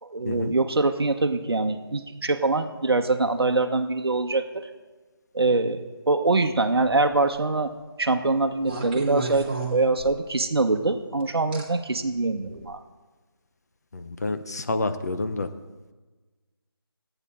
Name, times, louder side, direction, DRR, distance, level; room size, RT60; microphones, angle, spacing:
voice 1, 0.0-4.7 5.3-7.7 8.0-12.8, right 3 dB, 75° right, 5 dB, 0.9 m, -24 dB
sound 1, 6.8-7.3 8.6-10.4 11.5-11.6 12.5-12.6, right 3 dB, 25° right, 1.7 m, -31 dB
voice 2, 13.9-15.5, left 2 dB, 40° left, 9 dB, 0.7 m, -29 dB
14.0 x 9.0 x 4.2 m, 1.3 s
figure-of-eight pair, 165°, 13 cm